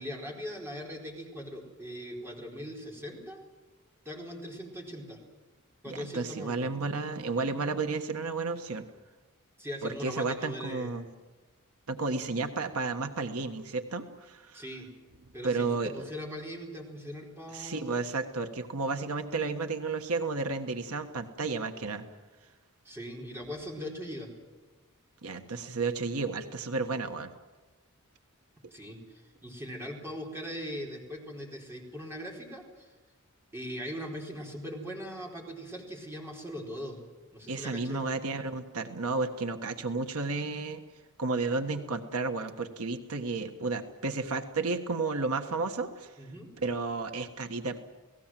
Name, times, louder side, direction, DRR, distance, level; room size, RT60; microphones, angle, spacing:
voice 1, 0.0-3.4 4.0-5.2 5.8-6.7 9.6-10.9 14.5-14.9 15.3-18.0 22.8-24.3 28.7-32.9 33.5-37.0 37.3-38.0 46.2-46.5, equal, 10° right, -1 dB, 4.5 m, -40 dB
voice 2, 5.9-8.8 9.8-11.1 11.9-14.6 15.4-16.0 17.5-22.0 25.2-27.3 37.5-40.8 41.2-46.1 46.6-47.8, right 3 dB, 80° right, 7 dB, 1.4 m, -32 dB
29.5 x 18.0 x 7.6 m, 1.3 s
head